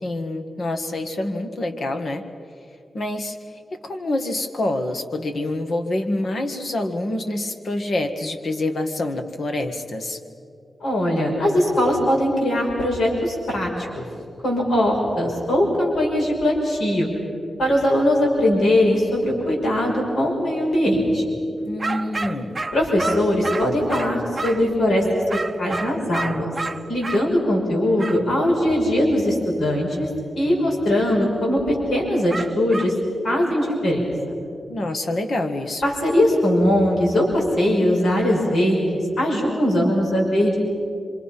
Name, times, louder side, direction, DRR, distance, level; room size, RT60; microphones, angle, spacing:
voice 1, 0.0-2.2 2.9-3.4 3.8-10.2 21.6-22.6 34.7-35.8, left 2 dB, 55° left, 6 dB, 1.7 m, -26 dB
voice 2, 10.8-13.9 14.4-17.1 17.6-21.2 22.7-25.0 25.3-26.5 26.9-30.1 30.4-32.9 33.2-34.0 35.8-40.6, left 1 dB, 75° left, -2 dB, 5.9 m, -20 dB
sound 1, 21.8-24.7 25.3-27.3 28.0-28.2 32.3-33.0, right 3 dB, 25° right, 0.8 m, -30 dB
26.5 x 26.5 x 5.8 m, 2.6 s
wide cardioid pair, 125°, 0 cm